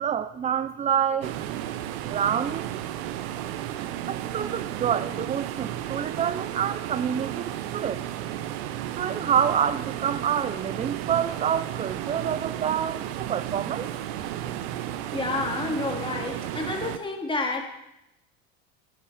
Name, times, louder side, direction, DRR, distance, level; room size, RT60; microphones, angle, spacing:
voice 1, 0.0-1.3 2.1-2.7 4.1-8.0 9.0-13.9, right 8 dB, 20° right, 14 dB, 0.5 m, -27 dB
sound 1, 1.2-17.0, right 12 dB, 75° right, 1.3 m, -33 dB
voice 2, 13.7-14.2 15.1-17.7, left 3 dB, 15° left, 1 dB, 3.9 m, -30 dB
22.5 x 9.1 x 6.4 m, 0.87 s
supercardioid pair, 105°, 32 cm